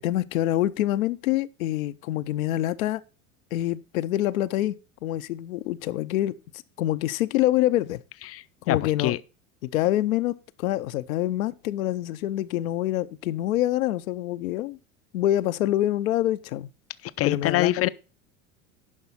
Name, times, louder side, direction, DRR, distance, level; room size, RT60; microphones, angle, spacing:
voice 1, 0.0-3.0 3.5-4.8 5.0-6.4 6.8-8.0 8.7-9.2 9.6-14.8 15.1-16.7 17.2-17.9, left 14 dB, 75° left, 0.7 m, -26 dB
voice 2, 8.3-9.2 17.2-17.9, left 15 dB, 35° left, 0.6 m, -25 dB
11.0 x 5.6 x 4.1 m
hypercardioid pair, 80°, 42 cm